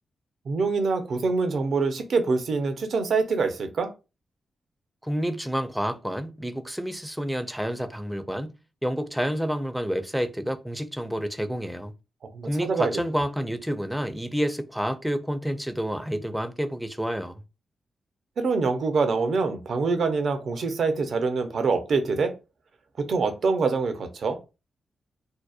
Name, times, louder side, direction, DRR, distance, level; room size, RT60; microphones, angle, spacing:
voice 1, 0.5-3.9 12.3-12.9 18.4-22.3 23.0-24.4, right 4 dB, 70° right, 0.5 m, -25 dB
voice 2, 5.0-8.6 8.8-11.9 12.4-17.4, equal, 5° right, 0.4 m, -29 dB
2.7 x 2.0 x 2.3 m
cardioid pair, 55°, 0 cm